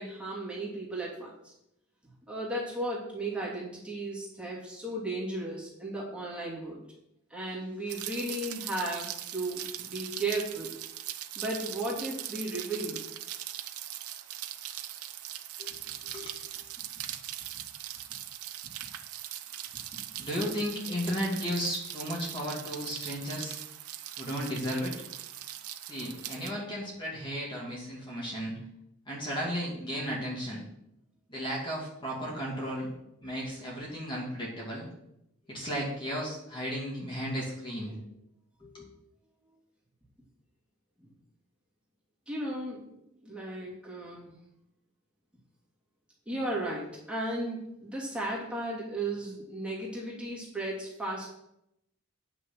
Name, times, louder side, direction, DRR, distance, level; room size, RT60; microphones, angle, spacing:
voice 1, 0.0-1.5 2.3-6.8 7.3-10.7 11.4-13.0 19.9-20.0 37.9-38.0 41.0-41.1 42.3-42.8 43.2-44.3 46.3-51.3, right 1 dB, 5° right, -4 dB, 2.7 m, -35 dB
Rain, 7.9-26.5, right 12 dB, 80° right, 0.8 m, -40 dB
voice 2, 16.1-16.5 20.2-23.6 24.2-24.9 25.9-28.5 29.1-30.6 31.3-32.9 33.2-34.9 35.5-37.9 38.6-38.9, equal, 20° left, -4 dB, 2.5 m, -34 dB
9.7 x 6.3 x 6.1 m, 0.81 s
head